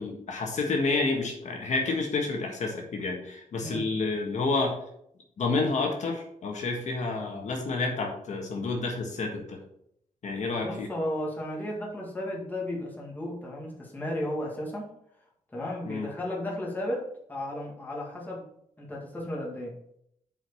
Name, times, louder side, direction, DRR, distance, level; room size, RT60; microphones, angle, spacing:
voice 1, 0.0-4.7 5.4-9.6 10.2-10.9 15.9-16.1, left 3 dB, 60° left, 1 dB, 1.5 m, -29 dB
voice 2, 10.5-14.9 15.5-18.5 18.8-19.8, left 1 dB, 10° left, -3 dB, 2.0 m, -34 dB
7.7 x 4.8 x 5.5 m, 0.73 s
wide cardioid pair, 165°, 14 cm